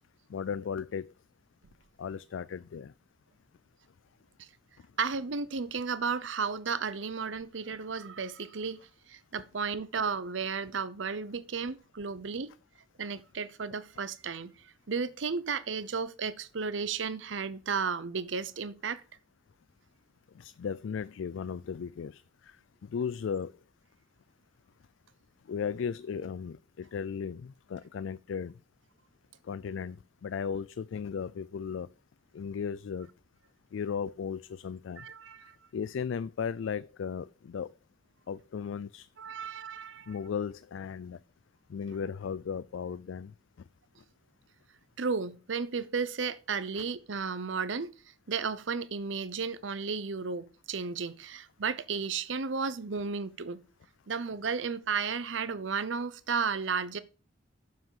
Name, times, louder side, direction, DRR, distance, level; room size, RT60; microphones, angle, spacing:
voice 1, 0.3-1.1 2.0-2.9 20.4-22.6 22.8-23.5 25.5-28.5 29.5-30.0 30.2-31.9 32.3-33.1 33.7-35.1 35.7-37.7 38.3-39.1 40.1-41.2 41.7-43.3, left 6 dB, 80° left, 0.4 m, -36 dB
voice 2, 5.0-12.5 13.0-19.0 35.0-35.6 39.2-40.2 45.0-47.9 48.3-53.6 54.1-57.0, right 5 dB, 75° right, 0.7 m, -33 dB
7.2 x 6.2 x 7.3 m
head